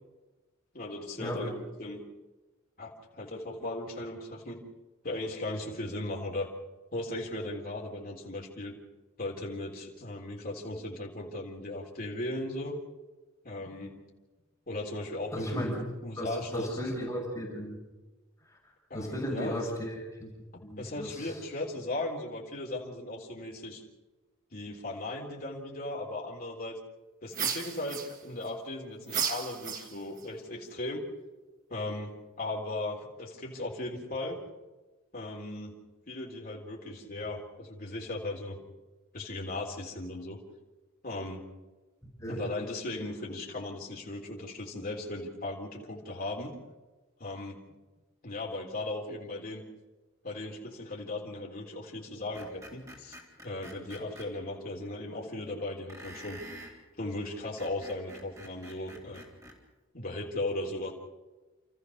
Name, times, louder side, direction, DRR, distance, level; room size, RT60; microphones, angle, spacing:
voice 1, 0.7-2.0 2.8-4.6 5.0-6.5 6.9-8.8 9.2-12.8 13.4-14.0 14.7-15.8 16.0-16.8 18.9-19.7 20.8-23.8 24.5-26.8 27.2-31.0 31.7-32.1 32.4-34.4 35.1-35.7 36.1-38.6 39.1-40.4 41.0-41.4 42.3-46.5 47.2-47.6 48.2-49.6 50.2-53.2 53.4-56.4 57.0-59.2 59.9-60.9, left 2 dB, 45° left, -2 dB, 3.7 m, -37 dB
voice 2, 15.3-15.9 16.2-17.8 18.9-20.3 20.6-21.3 42.2-42.4, equal, 15° left, -4 dB, 5.9 m, -35 dB
sound 1, 27.3-28.5 29.1-30.2, right 6 dB, 40° right, 1.7 m, -34 dB
Screech, 52.4-54.3 55.9-56.8 57.4-59.6, right 1 dB, 15° right, 3.7 m, -48 dB
30.0 x 14.5 x 6.6 m, 1.2 s
head